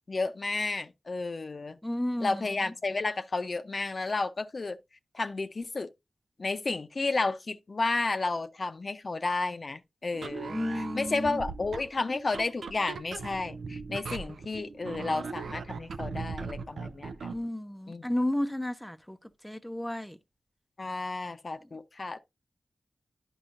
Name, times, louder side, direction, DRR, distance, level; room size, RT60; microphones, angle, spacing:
voice 1, 0.1-1.8 2.2-4.8 5.1-5.9 6.4-17.3 17.9-18.0 20.8-22.2, left 3 dB, 55° left, 0.6 m, -32 dB
voice 2, 1.8-2.4 10.5-11.4 17.3-19.2 19.4-20.2, left 1 dB, 5° left, 0.6 m, -32 dB
sound 1, 10.1-17.5, right 4 dB, 85° right, 0.4 m, -39 dB
9.8 x 5.4 x 2.5 m
cardioid pair, 45°, 0 cm